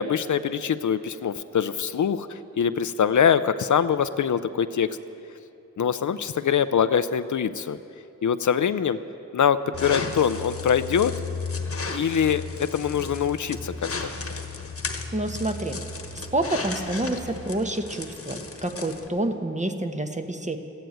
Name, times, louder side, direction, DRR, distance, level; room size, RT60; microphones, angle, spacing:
voice 1, 0.0-4.9 5.8-7.8 8.2-9.0 9.3-11.1 11.9-13.7, left 7 dB, 70° left, 13 dB, 0.5 m, -23 dB
sound 1, 9.7-19.1, left 4 dB, 45° left, 1.2 m, -34 dB
voice 2, 15.1-15.8 16.1-20.6, right 1 dB, 25° right, 6 dB, 1.0 m, -28 dB
14.0 x 10.0 x 9.1 m, 2.8 s
wide cardioid pair, 75°, 31 cm